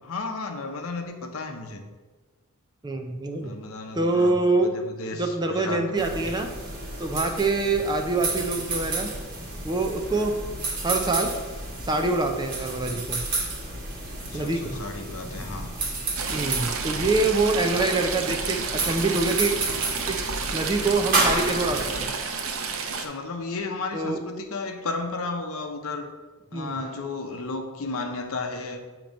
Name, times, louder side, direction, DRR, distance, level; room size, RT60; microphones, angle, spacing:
voice 1, 0.0-1.8 3.4-6.3 14.2-15.7 22.9-26.1 26.5-28.8, left 3 dB, 65° left, 5 dB, 0.8 m, -34 dB
voice 2, 2.8-3.5 3.9-4.7 5.2-6.5 7.0-9.1 9.6-10.3 10.8-11.3 11.8-13.2 14.3-14.8 16.3-19.6 20.0-22.1 23.9-24.2 26.5-26.8, right 3 dB, 20° right, 4 dB, 0.5 m, -25 dB
sound 1, 6.0-22.0, right 2 dB, 40° right, 1.5 m, -31 dB
Stream / Trickle dribble, 16.1-23.0, right 5 dB, 65° right, 0.7 m, -31 dB
8.7 x 3.0 x 5.1 m, 1.3 s
head